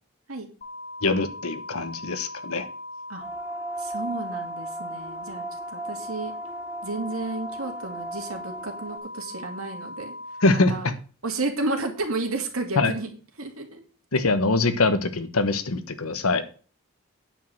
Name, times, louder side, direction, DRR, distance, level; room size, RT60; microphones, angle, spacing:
sound 1, 0.6-10.6, left 2 dB, 40° left, 1.1 m, -39 dB
voice 1, 1.0-2.7 10.4-10.7 12.8-12.9 14.1-16.4, left 3 dB, 80° left, 11 dB, 1.1 m, -23 dB
sound 2, 3.2-9.0, right 2 dB, 10° right, 2.3 m, -37 dB
voice 2, 3.8-6.3 6.8-10.1 10.5-10.9 11.2-13.1 13.4-13.8, right 2 dB, 75° right, 3 dB, 2.3 m, -32 dB
9.2 x 5.1 x 7.6 m, 0.38 s
head